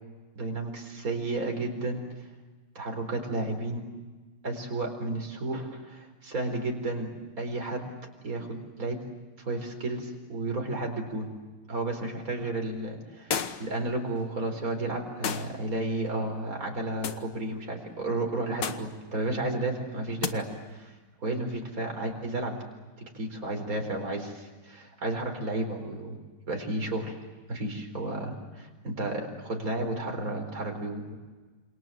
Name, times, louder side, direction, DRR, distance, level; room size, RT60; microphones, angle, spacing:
voice 1, 0.3-2.2 2.7-3.8 4.4-7.9 8.2-9.1 9.4-11.3 11.7-20.9 21.2-22.6 23.1-26.2 26.5-27.1 27.5-31.2, right 2 dB, 50° right, 3 dB, 4.9 m, -32 dB
sound 1, 13.3-13.8 15.2-15.6 17.0-17.3 18.6-19.0 20.2-20.4, left 7 dB, 75° left, 1.9 m, -32 dB
28.0 x 28.0 x 7.5 m, 1.3 s
omnidirectional pair, 1.9 m